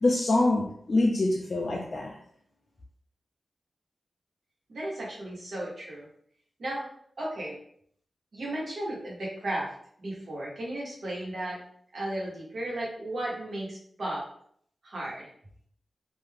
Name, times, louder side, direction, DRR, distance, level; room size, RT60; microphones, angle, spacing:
voice 1, 0.0-2.2, left 2 dB, 55° left, -2 dB, 0.4 m, -25 dB
voice 2, 4.7-6.1 6.6-6.8 7.2-7.6 8.3-9.7 10.0-11.6 11.9-14.2 14.8-15.3, right 1 dB, 70° right, -4 dB, 1.1 m, -34 dB
2.4 x 2.3 x 3.3 m, 0.63 s
cardioid pair, 50°, 0 cm